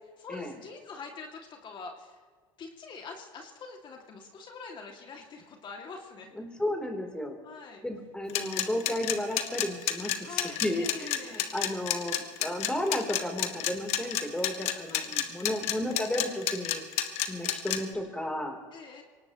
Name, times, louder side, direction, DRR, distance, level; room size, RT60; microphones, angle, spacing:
voice 1, 0.2-2.2 2.6-6.3 7.4-7.8 10.2-11.5 14.9-15.1 18.7-19.0, left 4 dB, 45° left, 2 dB, 2.4 m, -44 dB
voice 2, 6.4-7.4 7.8-16.8 17.3-18.6, left 1 dB, 10° left, 3 dB, 3.4 m, -33 dB
sound 1, 8.3-17.8, left 12 dB, 65° left, 1.3 m, -29 dB
23.5 x 18.5 x 3.1 m, 1.5 s
supercardioid pair, 85°, 11 cm